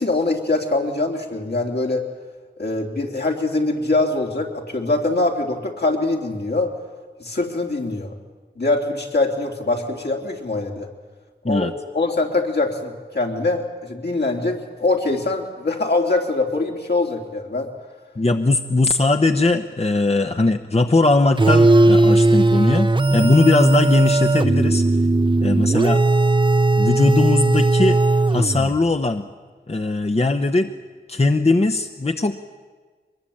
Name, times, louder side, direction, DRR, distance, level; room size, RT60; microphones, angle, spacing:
voice 1, 0.0-2.1 2.6-6.7 7.2-8.1 8.6-10.9 11.4-17.7 23.2-23.3, left 2 dB, 70° left, 1 dB, 3.5 m, -23 dB
voice 2, 18.2-24.8 25.4-26.0 26.8-28.0 28.3-29.3 29.7-30.7 31.1-32.4, left 2 dB, 35° left, 7 dB, 1.0 m, -19 dB
sound 1, 21.4-28.8, right 2 dB, 25° right, 0.7 m, -17 dB
23.0 x 21.0 x 8.8 m, 1.4 s
cardioid pair, 45°, 18 cm